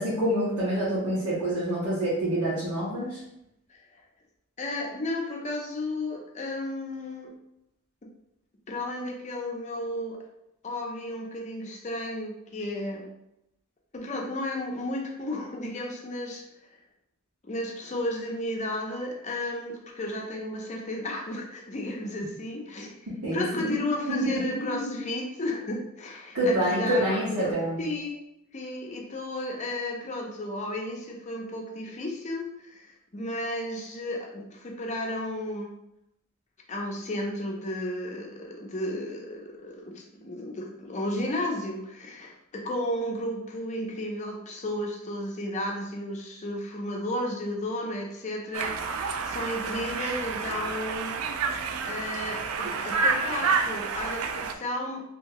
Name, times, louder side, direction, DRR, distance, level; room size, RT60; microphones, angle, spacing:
voice 1, 0.0-3.2 23.1-23.4 24.1-24.4 26.3-27.8, right 1 dB, 90° right, -11 dB, 1.4 m, -27 dB
voice 2, 4.6-7.3 8.7-10.2 10.6-13.1 13.9-16.4 17.4-22.9 23.3-27.5 27.8-28.2 28.5-35.7 36.7-48.8 49.2-51.1 51.8-55.1, left 1 dB, 35° left, 0 dB, 0.5 m, -33 dB
Conversation, 48.5-54.5, right 4 dB, 70° right, 0.3 m, -29 dB
2.8 x 2.7 x 3.0 m, 0.83 s
head